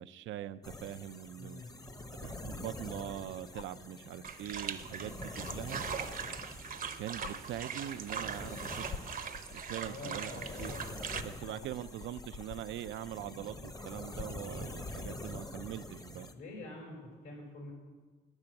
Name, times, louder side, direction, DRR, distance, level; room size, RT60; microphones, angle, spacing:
voice 1, 0.0-1.6 2.2-5.8 7.0-8.9 9.5-10.3 10.6-10.7 11.2-16.3, right 12 dB, 75° right, 13 dB, 0.4 m, -42 dB
sound 1, 0.6-16.3, left 2 dB, 20° left, 0.8 m, -46 dB
voice 2, 1.4-1.7 9.9-11.7 16.3-17.7, left 2 dB, 85° left, 0 dB, 4.3 m, -47 dB
sound 2, 3.5-3.8 5.4-5.6 6.7-6.8 7.2-7.4 8.3-8.5 8.9-14.6 16.2-16.3, left 6 dB, 40° left, 0.5 m, -49 dB
sound 3, 4.2-11.2, right 7 dB, 45° right, 0.7 m, -41 dB
9.9 x 7.2 x 7.7 m, 1.4 s
cardioid pair, 90°, 20 cm